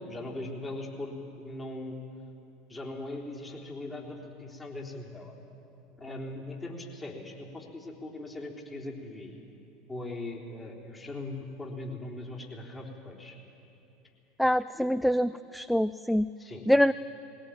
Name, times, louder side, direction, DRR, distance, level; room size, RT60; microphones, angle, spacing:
voice 1, 0.0-2.0 2.7-5.3 6.0-9.4 9.9-13.4 14.7-14.9 16.4-16.6, left 2 dB, 20° left, -1 dB, 3.7 m, -40 dB
voice 2, 14.4-16.3 16.7-16.9, equal, ahead, 15 dB, 0.4 m, -25 dB
20.5 x 17.5 x 8.9 m, 2.8 s
hypercardioid pair, 80°, 0 cm